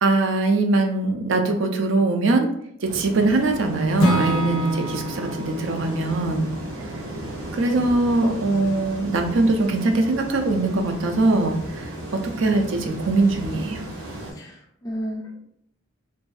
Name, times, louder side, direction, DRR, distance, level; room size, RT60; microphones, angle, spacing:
voice 1, 0.0-2.5 2.8-6.5 7.5-13.9, right 2 dB, 65° right, 5 dB, 0.4 m, -22 dB
sound 1, 2.8-14.3, right 1 dB, 80° right, 0.8 m, -35 dB
Acoustic guitar / Strum, 4.0-8.0, equal, 90° left, 0.5 m, -28 dB
voice 2, 14.3-15.4, equal, 15° left, -2 dB, 0.4 m, -33 dB
2.6 x 2.3 x 2.3 m, 0.71 s
head